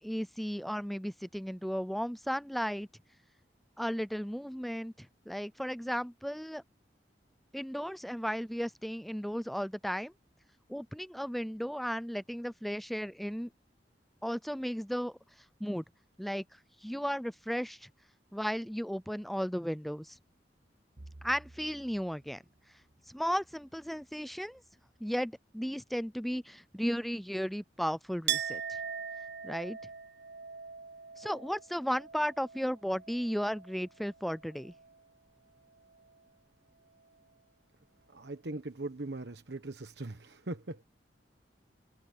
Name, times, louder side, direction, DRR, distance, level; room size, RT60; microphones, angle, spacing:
voice 1, 0.0-2.9 3.8-6.6 7.5-10.1 10.7-13.5 14.2-15.2 15.6-15.8 16.2-16.4 16.8-17.9 18.3-20.2 21.2-22.4 23.1-24.6 25.0-28.6 29.4-29.8 31.2-34.7, equal, ahead, 0.4 m, -35 dB
Bowed string instrument, 21.0-25.4, right 1 dB, 40° right, 1.4 m, -57 dB
Chink clink, 28.3-33.8 34.1-35.0, right 8 dB, 85° right, 0.8 m, -40 dB
voice 2, 38.1-40.8, right 2 dB, 70° right, 1.2 m, -40 dB
head